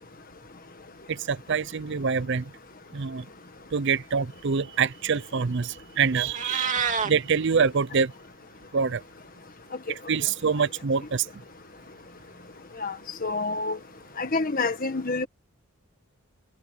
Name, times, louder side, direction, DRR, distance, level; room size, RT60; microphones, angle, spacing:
voice 1, 1.1-2.5 2.9-3.2 3.7-8.1 8.7-9.0 10.1-11.3, right 5 dB, 50° right, 0.5 m, -25 dB
Meow, 6.1-7.1, right 6 dB, 35° right, 2.4 m, -27 dB
voice 2, 13.2-13.8 14.2-15.3, left 3 dB, 40° left, 1.6 m, -27 dB
head